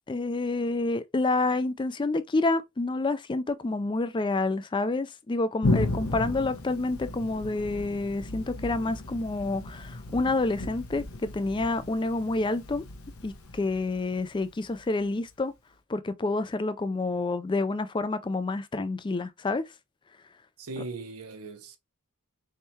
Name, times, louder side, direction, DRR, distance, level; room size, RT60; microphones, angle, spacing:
voice 1, 0.1-12.8 13.2-15.5 15.9-19.6, left 2 dB, 20° left, 0.4 m, -28 dB
Thunder, 5.6-15.0, left 2 dB, 75° left, 1.0 m, -34 dB
voice 2, 20.6-21.8, right 3 dB, 80° right, 0.8 m, -39 dB
4.4 x 3.6 x 2.7 m
head